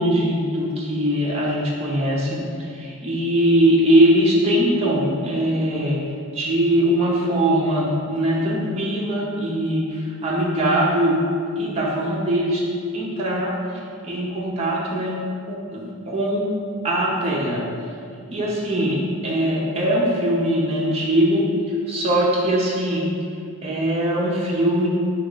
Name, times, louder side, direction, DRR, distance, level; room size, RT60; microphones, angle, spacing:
voice 1, 0.0-6.0 6.3-11.2 11.6-12.6 12.9-13.5 14.0-15.2 15.5-16.5 16.8-17.6 18.3-19.0 19.2-23.0 23.6-24.9, right 1 dB, 30° right, -5 dB, 0.6 m, -21 dB
4.5 x 3.0 x 3.8 m, 2.4 s
head